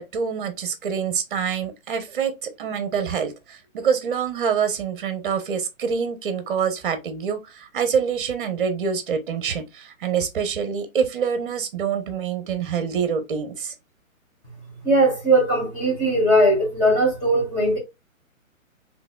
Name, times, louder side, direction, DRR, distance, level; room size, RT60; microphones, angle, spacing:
voice 1, 0.0-13.7, right 7 dB, 40° right, 0.9 m, -26 dB
voice 2, 14.8-17.8, right 1 dB, 20° left, 1.8 m, -19 dB
3.8 x 3.3 x 2.2 m
hypercardioid pair, 155°, 42 cm